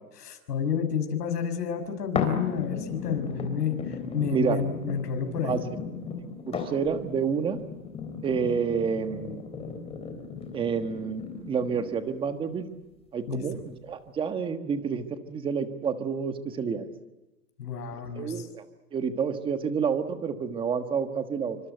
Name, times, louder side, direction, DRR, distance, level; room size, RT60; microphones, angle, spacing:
voice 1, 0.2-3.8 4.1-5.7 13.3-13.6 17.6-18.5, left 7 dB, 75° left, 7 dB, 6.4 m, -30 dB
sound 1, 2.1-12.1 12.7-12.8, left 5 dB, 10° left, 3.5 m, -36 dB
voice 2, 4.2-4.6 5.4-5.6 6.5-7.6 8.2-9.4 10.5-12.7 13.1-16.9 18.1-18.6 18.9-21.6, right 6 dB, 10° right, 9 dB, 1.4 m, -29 dB
28.0 x 25.5 x 8.1 m, 1.1 s
hypercardioid pair, 160°, 48 cm